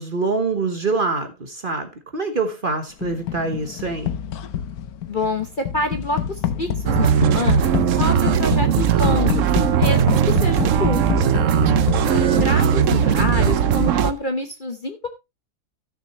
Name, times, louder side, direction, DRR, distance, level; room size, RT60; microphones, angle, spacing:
voice 1, 0.0-4.1 12.0-12.3, right 3 dB, 35° right, 1.2 m, -25 dB
sound 1, 3.0-13.9, left 9 dB, 70° left, 1.2 m, -27 dB
voice 2, 5.1-9.4 9.7-11.2 12.2-15.1, left 2 dB, 35° left, 1.0 m, -27 dB
sound 2, 6.9-14.1, right 8 dB, 60° right, 1.0 m, -18 dB
15.0 x 6.7 x 3.0 m
omnidirectional pair, 1.7 m